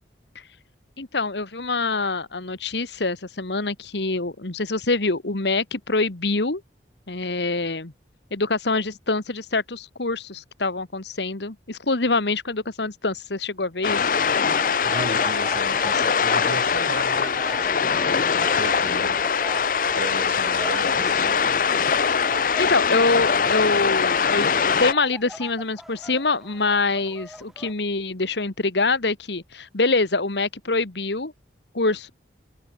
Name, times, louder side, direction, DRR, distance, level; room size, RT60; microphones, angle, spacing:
voice 1, 1.0-6.6 7.1-7.9 8.3-14.0 22.6-31.3 31.7-32.1, left 3 dB, 70° left, 1.6 m, -25 dB
sound 1, 13.8-24.9, left 6 dB, 45° left, 0.6 m, -22 dB
sound 2, 14.1-22.0 22.2-27.7, equal, ahead, 7.3 m, -41 dB
voice 2, 14.8-18.0 18.3-19.2 19.9-21.7, right 2 dB, 65° right, 4.6 m, -36 dB
head